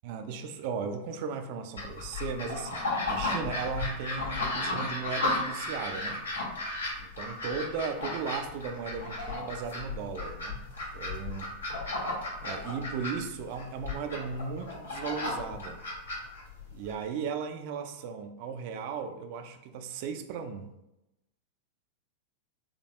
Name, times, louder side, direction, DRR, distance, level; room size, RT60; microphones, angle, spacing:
voice 1, 0.0-6.3 7.0-10.6 10.9-11.4 12.4-15.8 16.7-20.7, right 6 dB, 45° right, 7 dB, 0.4 m, -36 dB
sound 1, 1.8-16.9, left 2 dB, 80° left, 1.1 m, -34 dB
3.6 x 3.4 x 2.4 m, 0.92 s
figure-of-eight pair, 90°, 0 cm